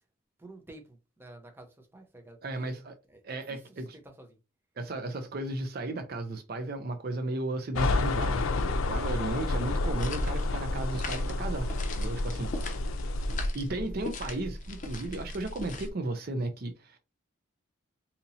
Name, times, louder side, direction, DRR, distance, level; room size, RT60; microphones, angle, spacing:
voice 1, 0.4-2.8 3.1-3.6 4.0-4.3, right 1 dB, 10° right, 0.7 m, -51 dB
voice 2, 2.4-2.9 3.2-4.0 4.8-11.7 12.0-12.5 13.5-17.0, right 2 dB, 50° right, 0.5 m, -34 dB
Air purifier, 7.7-13.5, left 2 dB, 90° left, 0.5 m, -30 dB
sound 1, 9.8-15.9, left 1 dB, 40° left, 0.6 m, -38 dB
2.8 x 2.7 x 4.0 m
head